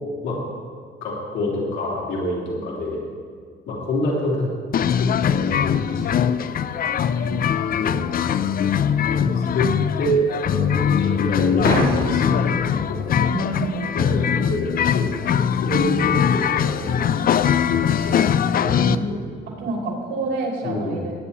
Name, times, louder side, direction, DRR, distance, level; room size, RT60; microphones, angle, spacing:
voice 1, 1.0-3.0 3.7-4.5 5.0-6.7 7.7-9.7 10.0-13.3 13.9-17.0 17.6-19.3 20.6-21.0, left 1 dB, 90° left, -5 dB, 3.5 m, -28 dB
sound 1, 4.7-19.0, left 8 dB, 45° left, 0.4 m, -21 dB
sound 2, 11.6-14.2, left 2 dB, 65° left, 3.5 m, -26 dB
voice 2, 13.3-14.4 18.8-21.1, right 2 dB, 85° right, -2 dB, 3.0 m, -29 dB
19.0 x 9.7 x 3.0 m, 2.1 s
cardioid pair, 90°, 20 cm